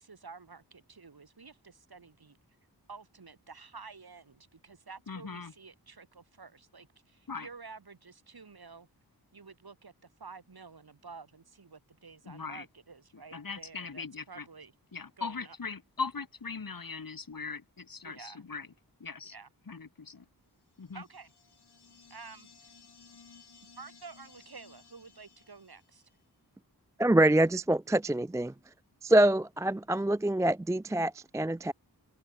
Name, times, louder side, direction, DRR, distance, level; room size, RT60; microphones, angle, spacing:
voice 1, 0.0-2.3 2.9-8.9 9.3-14.7 15.2-15.6 18.0-18.4 19.2-19.5 20.9-21.3 22.1-22.5 23.8-26.0, right 4 dB, 70° right, 4.6 m, -50 dB
voice 2, 5.1-5.5 7.3-7.5 12.2-12.7 13.1-14.5 14.9-18.7 19.0-19.3 19.7-20.3 20.8-21.0, left 4 dB, 60° left, 2.4 m, -40 dB
sound 1, 20.8-26.2, left 5 dB, 85° left, 5.1 m, -58 dB
voice 3, 27.0-28.5 29.0-31.7, right 1 dB, 10° right, 0.4 m, -25 dB
open air
cardioid pair, 40°, 38 cm